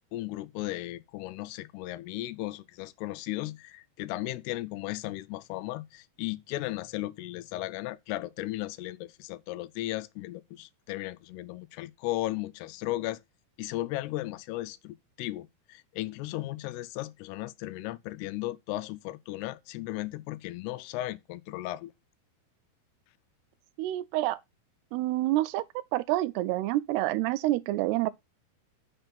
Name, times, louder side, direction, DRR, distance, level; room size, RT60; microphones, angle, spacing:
voice 1, 0.1-13.2 13.6-21.9, left 17 dB, 90° left, 2.7 m, -36 dB
voice 2, 23.8-24.4 24.9-25.6 25.9-28.1, right 16 dB, 90° right, 2.7 m, -27 dB
6.5 x 5.2 x 5.9 m
omnidirectional pair, 4.6 m